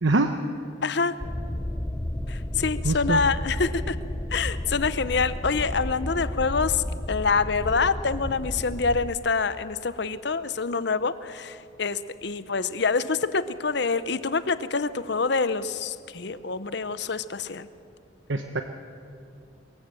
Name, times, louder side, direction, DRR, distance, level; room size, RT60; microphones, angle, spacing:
voice 1, 0.0-0.3 2.8-3.2 18.3-18.6, right 2 dB, 70° right, 6 dB, 0.9 m, -23 dB
voice 2, 0.8-1.2 2.3-4.0 4.3-17.7, left 4 dB, 60° left, 14 dB, 0.8 m, -26 dB
sound 1, 1.2-9.1, left 1 dB, 15° left, 0.6 m, -32 dB
23.0 x 15.0 x 7.6 m, 2.7 s
head